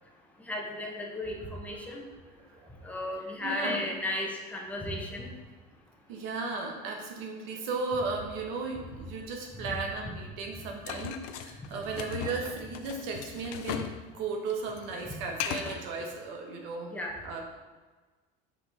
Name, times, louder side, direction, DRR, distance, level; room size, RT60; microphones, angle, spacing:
voice 1, 0.4-2.0 2.8-5.3 9.5-9.7 16.0-16.1 16.9-17.1, left 1 dB, 5° left, -1 dB, 0.9 m, -35 dB
voice 2, 2.5-3.0 3.4-3.8 6.1-16.9 17.2-17.4, right 4 dB, 70° right, 2 dB, 1.2 m, -35 dB
sound 1, 10.9-14.0 14.3-15.9, left 9 dB, 70° left, 0.5 m, -37 dB
6.1 x 4.7 x 3.5 m, 1.3 s
cardioid pair, 140°, 20 cm